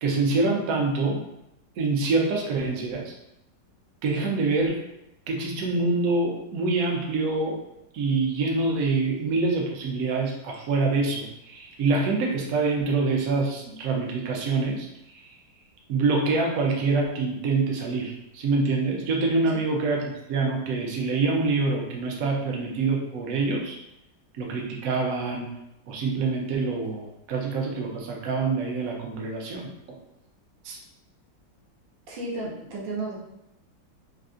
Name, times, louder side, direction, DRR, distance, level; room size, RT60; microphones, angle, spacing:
voice 1, 0.0-1.2 1.8-3.1 4.0-4.8 5.3-7.6 7.9-14.9 15.1-15.2 15.9-23.8 24.4-25.5 25.9-30.0 30.6-30.8, right 3 dB, 70° right, 0 dB, 0.9 m, -25 dB
voice 2, 32.1-33.2, right 2 dB, 85° right, -4 dB, 1.6 m, -33 dB
3.6 x 2.4 x 2.5 m, 0.84 s
omnidirectional pair, 2.0 m